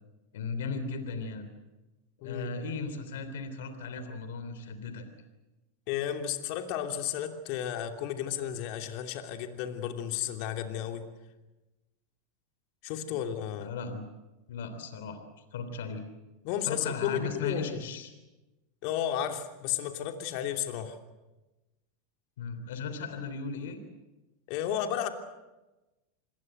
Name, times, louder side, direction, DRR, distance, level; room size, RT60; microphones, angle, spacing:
voice 1, 0.3-1.5 2.2-5.0 13.1-13.2 13.6-14.1 14.5-15.2 15.5-16.0 16.7-18.1 22.4-23.8, left 4 dB, 75° left, 9 dB, 3.4 m, -36 dB
voice 2, 2.2-2.5 5.9-11.1 12.8-13.7 16.4-17.7 18.8-21.0 24.5-25.1, left 10 dB, 55° left, 6 dB, 2.9 m, -33 dB
27.5 x 21.0 x 8.0 m, 1.1 s
hypercardioid pair, 100°, 0 cm